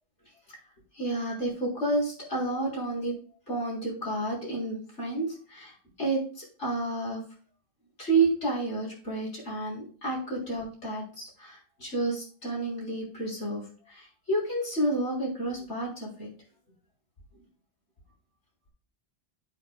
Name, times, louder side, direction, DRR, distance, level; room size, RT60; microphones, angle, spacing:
voice 1, 0.9-3.1 3.5-7.2 8.0-16.3, right 2 dB, 90° left, -4 dB, 4.1 m, -30 dB
9.7 x 7.9 x 2.3 m, 0.42 s
omnidirectional pair, 1.2 m